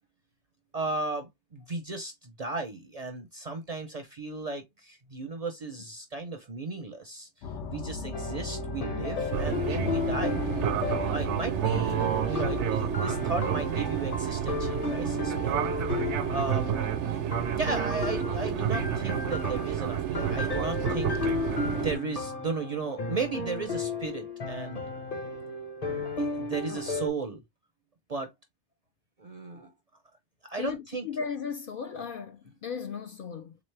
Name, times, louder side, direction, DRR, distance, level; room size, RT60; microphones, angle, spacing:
voice 1, 0.7-10.4 11.1-15.6 16.3-16.7 17.5-21.1 21.8-24.8 25.9-27.4 28.1-28.3 29.2-29.7 30.4-31.1, right 3 dB, 45° right, 0.5 m, -35 dB
sound 1, 7.4-14.6, left 4 dB, 80° left, 0.9 m, -38 dB
sound 2, 8.1-27.1, left 3 dB, 35° left, 0.9 m, -34 dB
Fixed-wing aircraft airplane, 9.3-22.0, right 10 dB, 80° right, 0.9 m, -30 dB
voice 2, 30.6-33.6, left 6 dB, 60° left, 0.6 m, -36 dB
3.5 x 3.0 x 3.2 m
omnidirectional pair, 1.2 m